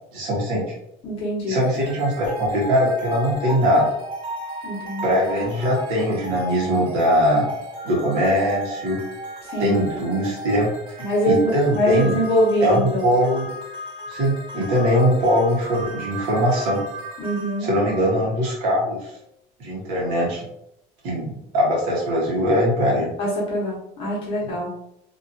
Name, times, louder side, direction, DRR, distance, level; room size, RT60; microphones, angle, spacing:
voice 1, 0.1-0.6 1.5-3.9 5.0-7.5 7.8-9.0 9.6-10.7 11.3-12.2 12.6-13.5 14.1-16.8 17.6-19.1 19.6-20.4 21.0-23.1, equal, 65° right, -4 dB, 1.4 m, -21 dB
voice 2, 1.0-1.6 4.6-5.2 9.5-9.8 11.0-13.0 17.2-17.7 23.2-24.7, equal, 40° left, -4 dB, 1.0 m, -23 dB
sound 1, 1.6-18.8, right 1 dB, 35° right, 0.5 m, -35 dB
2.9 x 2.7 x 2.7 m, 0.78 s
cardioid pair, 175°, 15 cm